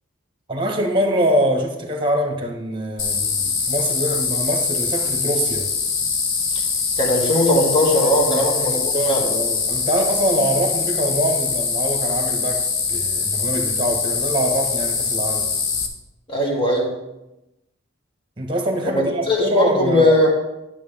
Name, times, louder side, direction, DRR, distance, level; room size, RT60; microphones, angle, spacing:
voice 1, 0.5-5.7 8.3-12.6 12.9-15.5 18.4-20.1, equal, 25° right, 3 dB, 1.5 m, -24 dB
sound 1, 3.0-15.9, left 5 dB, 80° left, 1.3 m, -23 dB
voice 2, 7.0-9.2 16.3-16.9 18.8-20.3, left 1 dB, 25° left, -2 dB, 2.3 m, -19 dB
12.5 x 7.5 x 3.6 m, 0.95 s
head